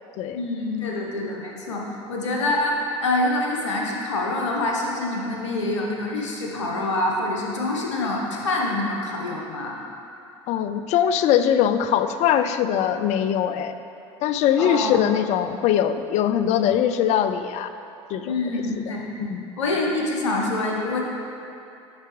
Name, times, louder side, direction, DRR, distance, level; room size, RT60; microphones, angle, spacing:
voice 1, 0.3-1.8 2.1-9.8 14.6-15.0 18.2-19.1 19.6-21.0, left 2 dB, 85° left, -1 dB, 0.9 m, -26 dB
voice 2, 10.5-13.8 14.2-17.7 18.1-18.4 19.2-19.5, left 9 dB, 50° left, 10 dB, 0.4 m, -21 dB
7.3 x 5.5 x 3.1 m, 2.7 s
hypercardioid pair, 75°, 15 cm